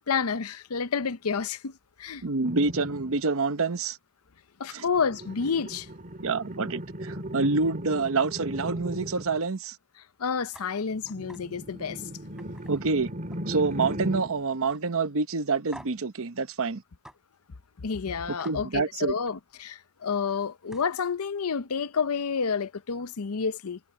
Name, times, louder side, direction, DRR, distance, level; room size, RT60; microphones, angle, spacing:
voice 1, 0.1-1.7 2.0-2.2 4.6-5.9 10.2-12.0 17.8-23.8, left 6 dB, 85° left, 0.7 m, -29 dB
voice 2, 2.2-4.0 4.7-4.8 6.2-9.8 12.7-13.1 13.5-16.8 18.4-19.1, right 4 dB, 65° right, 0.9 m, -27 dB
sound 1, 2.4-3.2 4.9-9.4 10.9-14.4, equal, 40° right, 2.6 m, -37 dB
sound 2, 10.5-10.7 11.1-11.4 11.8-12.0 12.4-13.6 13.8-14.3 14.7-14.8 15.7-16.1 17.0-17.2 18.4-18.6 20.3-20.4 20.7-21.0, equal, 5° right, 5.6 m, -48 dB
head